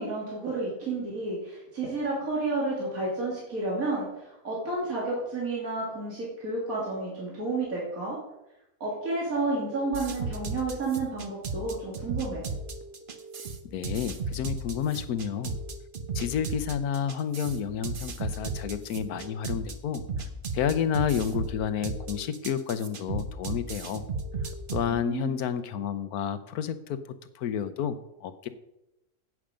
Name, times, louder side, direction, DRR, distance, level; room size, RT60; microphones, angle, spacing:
voice 1, 0.0-8.2 8.8-12.4 24.9-25.3, right 3 dB, 70° right, -5 dB, 3.2 m, -31 dB
sound 1, 9.5-10.5 12.4-13.4 15.4-16.3 18.3-19.3 21.2-22.2 24.1-24.5, right 3 dB, 10° right, 1.3 m, -47 dB
sound 2, 9.9-24.9, right 3 dB, 40° right, 1.0 m, -35 dB
voice 2, 13.7-15.6 16.1-20.0 20.5-24.0 24.4-27.0 27.3-28.5, left 8 dB, 85° left, 12 dB, 1.3 m, -30 dB
11.0 x 8.6 x 5.1 m, 0.91 s
omnidirectional pair, 1.5 m